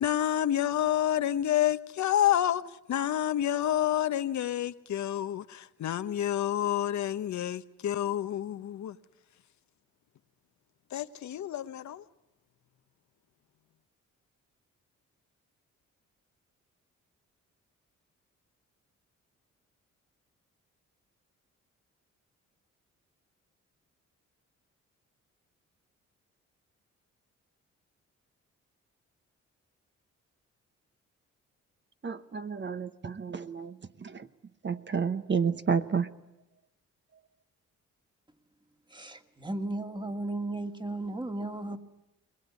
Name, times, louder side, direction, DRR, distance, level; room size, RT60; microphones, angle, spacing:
voice 1, 0.0-2.6 2.9-9.0 10.9-12.0, left 11 dB, 70° left, 1.0 m, -28 dB
voice 2, 32.0-34.3 34.6-36.1, right 6 dB, 40° right, 1.1 m, -31 dB
voice 3, 38.9-41.8, right 2 dB, 15° right, 2.1 m, -35 dB
22.0 x 21.0 x 9.6 m
cardioid pair, 75°, 30 cm